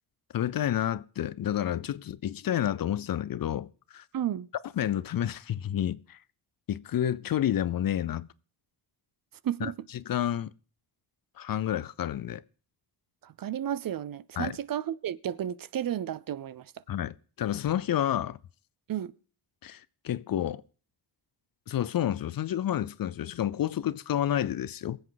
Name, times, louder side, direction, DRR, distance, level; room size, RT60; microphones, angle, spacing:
voice 1, 0.3-4.0 4.8-6.2 6.7-8.3 9.6-10.5 11.4-12.4 14.4-14.6 16.9-18.4 19.6-20.6 21.7-25.0, left 11 dB, 50° left, 0.5 m, -30 dB
voice 2, 4.1-4.5 9.4-9.9 13.2-16.7 18.9-19.1, right 10 dB, 50° right, 0.5 m, -32 dB
23.5 x 7.9 x 3.9 m
wide cardioid pair, 115°, 44 cm